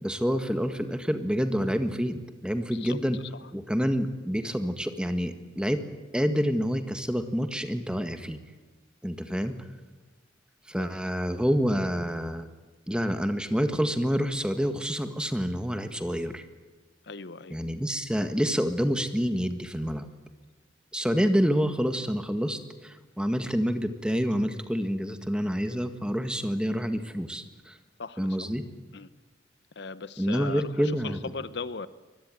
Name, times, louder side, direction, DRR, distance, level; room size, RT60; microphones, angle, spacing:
voice 1, 0.0-3.2 3.5-5.8 6.1-8.4 9.0-9.5 10.7-12.5 12.9-16.4 17.5-20.1 20.9-27.8 28.2-28.6 30.2-31.3, equal, 5° right, 8 dB, 1.7 m, -28 dB
voice 2, 17.1-17.6 28.0-28.2 28.9-29.1 29.8-30.7 31.3-31.9, left 4 dB, 60° left, 15 dB, 0.8 m, -37 dB
25.0 x 20.5 x 9.2 m, 1.3 s
head